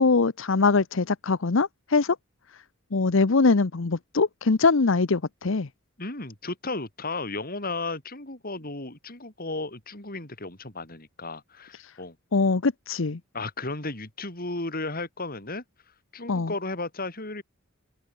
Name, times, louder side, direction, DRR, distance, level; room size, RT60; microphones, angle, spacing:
voice 1, 0.0-2.2 2.9-5.7 11.8-11.9 12.3-13.2 16.3-16.5, left 4 dB, 65° left, 0.8 m, -22 dB
voice 2, 6.0-12.1 13.3-15.6 16.1-17.4, left 2 dB, 45° left, 5.1 m, -34 dB
open air
head